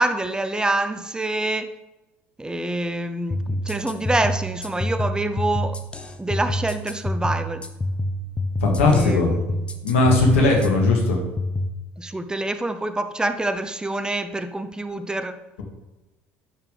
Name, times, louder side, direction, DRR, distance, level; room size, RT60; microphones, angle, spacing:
voice 1, 0.0-1.7 2.4-5.8 6.2-7.6 8.8-9.6 10.3-10.5 12.0-15.4, right 2 dB, 10° right, 0.7 m, -26 dB
sound 1, 3.3-11.7, left 1 dB, 15° left, 1.0 m, -27 dB
voice 2, 8.6-9.3 9.8-11.2, left 3 dB, 80° left, 2.0 m, -18 dB
10.5 x 6.0 x 3.4 m
hypercardioid pair, 70°, 7 cm